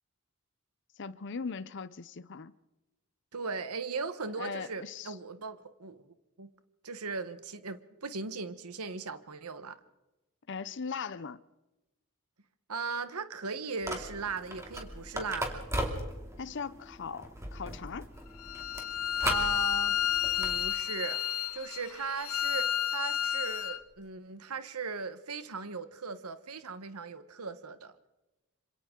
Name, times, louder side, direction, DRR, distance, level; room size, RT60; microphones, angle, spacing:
voice 1, 1.0-2.5 4.4-5.1 10.5-11.4 16.4-18.1, left 5 dB, 55° left, 0.6 m, -39 dB
voice 2, 3.3-6.0 6.4-6.5 6.8-9.8 12.7-15.6 19.2-20.0 20.4-21.2 21.5-27.9, right 4 dB, 85° right, 1.1 m, -38 dB
sound 1, 13.8-20.7, right 1 dB, 15° right, 2.8 m, -38 dB
Bowed string instrument, 18.4-23.8, left 11 dB, 75° left, 1.4 m, -31 dB
27.0 x 26.0 x 3.8 m
head